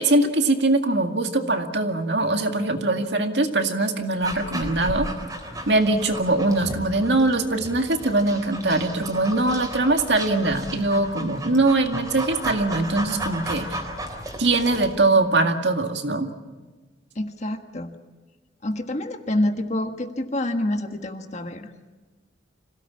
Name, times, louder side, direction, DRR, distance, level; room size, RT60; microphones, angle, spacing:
voice 1, 0.0-5.1 5.7-13.8 14.4-16.3, right 2 dB, 65° right, 5 dB, 2.0 m, -22 dB
Dog, 4.2-14.9, right 1 dB, 20° right, 3.7 m, -34 dB
voice 2, 17.1-17.9 18.6-21.7, left 1 dB, 40° left, 6 dB, 1.6 m, -27 dB
26.5 x 17.5 x 8.6 m, 1.2 s
head